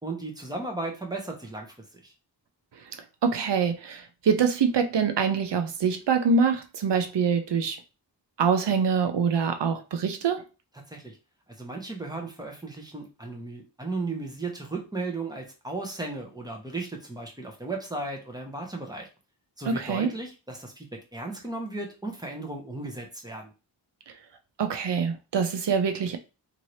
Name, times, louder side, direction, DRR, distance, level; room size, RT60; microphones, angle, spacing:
voice 1, 0.0-2.1 10.9-11.2 11.6-19.1 19.6-23.5, right 2 dB, 10° right, 0.8 m, -35 dB
voice 2, 3.2-7.8 8.4-10.4 19.7-20.1 24.6-26.2, right 6 dB, 70° right, 0.6 m, -25 dB
2.8 x 2.6 x 3.1 m
wide cardioid pair, 80°, 43 cm